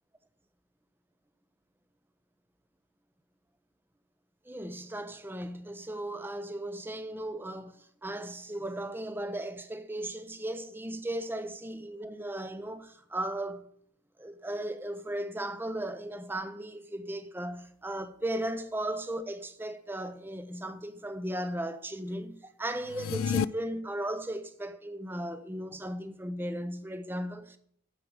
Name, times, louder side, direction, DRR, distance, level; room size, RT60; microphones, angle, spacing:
voice 1, 4.5-13.7 14.2-27.6, right 1 dB, 10° right, 0.6 m, -36 dB
sound 1, 22.8-23.4, left 7 dB, 90° left, 0.3 m, -29 dB
10.5 x 7.7 x 5.0 m
head